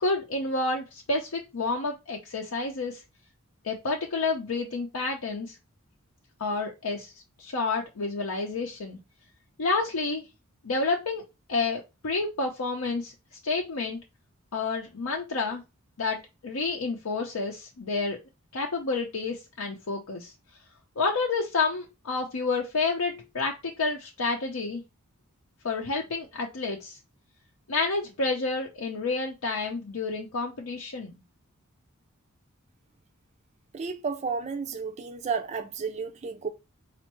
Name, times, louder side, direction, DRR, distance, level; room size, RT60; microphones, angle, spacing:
voice 1, 0.0-3.0 3.6-5.5 6.4-7.1 7.4-9.0 9.6-10.2 10.6-11.2 11.5-13.1 13.4-14.0 14.5-15.6 16.0-18.2 18.5-20.3 21.0-24.8 25.6-27.0 27.7-31.1, left 3 dB, 80° left, 0.6 m, -29 dB
voice 2, 33.7-36.5, right 5 dB, 30° right, 0.4 m, -32 dB
4.4 x 2.5 x 2.9 m
head